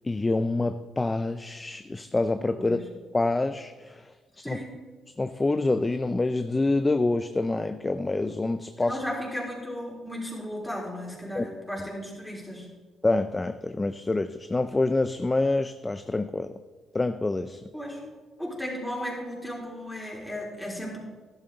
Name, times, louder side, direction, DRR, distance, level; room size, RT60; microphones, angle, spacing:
voice 1, 0.0-2.8 3.1-4.1 4.4-4.6 5.2-9.0 11.3-11.4 13.0-16.5 16.9-17.6, left 2 dB, 20° left, 10 dB, 0.4 m, -26 dB
voice 2, 4.4-4.8 8.8-12.7 17.7-18.0 18.4-21.0, equal, ahead, -4 dB, 4.2 m, -35 dB
12.0 x 11.5 x 3.9 m, 1.4 s
cardioid pair, 90°, 0 cm